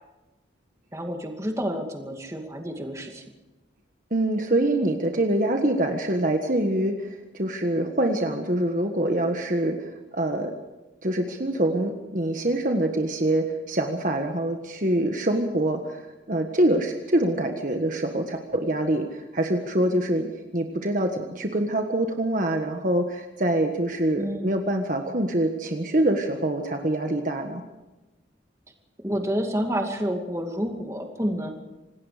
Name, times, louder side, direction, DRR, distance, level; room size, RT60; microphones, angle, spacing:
voice 1, 0.9-3.2 24.2-24.5 29.0-31.5, equal, 15° right, 3 dB, 2.4 m, -29 dB
voice 2, 4.1-10.5 11.0-16.0 16.3-20.3 20.5-27.6, right 1 dB, 45° right, 4 dB, 1.5 m, -25 dB
26.5 x 19.5 x 5.1 m, 1.1 s
head